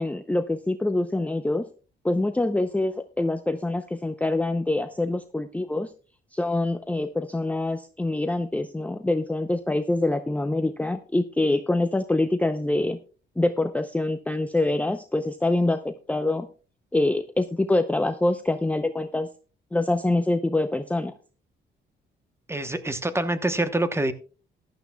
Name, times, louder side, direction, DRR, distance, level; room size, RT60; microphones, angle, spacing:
voice 1, 0.0-1.7 2.0-5.9 6.3-13.0 13.4-16.5 16.9-19.3 19.7-21.1, left 2 dB, 5° left, 8 dB, 0.6 m, -25 dB
voice 2, 22.5-24.1, right 1 dB, 15° right, 11 dB, 1.0 m, -26 dB
15.0 x 11.5 x 2.3 m, 0.36 s
cardioid pair, 90°, 20 cm